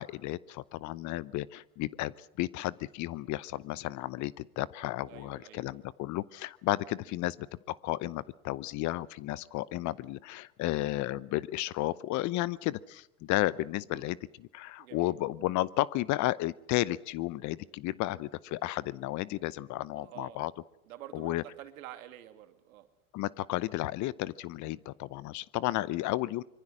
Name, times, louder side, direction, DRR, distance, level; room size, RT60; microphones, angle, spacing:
voice 1, 0.0-7.4 7.7-20.5 21.1-21.4 23.1-26.4, left 17 dB, 40° left, 21 dB, 0.8 m, -33 dB
voice 2, 5.0-5.6 13.9-14.1 14.8-15.2 19.9-20.5 20.8-22.9, right 13 dB, 70° right, 8 dB, 2.5 m, -48 dB
25.0 x 23.0 x 6.3 m, 0.80 s
hypercardioid pair, 90°, 43 cm